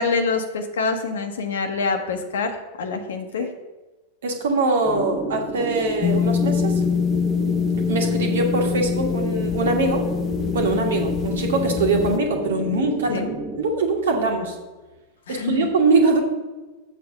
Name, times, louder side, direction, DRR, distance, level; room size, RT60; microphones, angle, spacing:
voice 1, 0.0-3.5 13.1-13.3 15.3-15.7, left 4 dB, 65° left, 6 dB, 1.0 m, -25 dB
voice 2, 4.2-6.8 7.9-10.0 10.5-13.2 13.6-14.6 15.3-16.2, right 3 dB, 60° right, 3 dB, 1.5 m, -22 dB
sound 1, 4.8-13.6, right 1 dB, 15° right, 1.2 m, -31 dB
sound 2, 6.0-12.2, left 7 dB, 30° left, 0.3 m, -24 dB
7.5 x 4.6 x 6.5 m, 1.2 s
figure-of-eight pair, 90°, 0 cm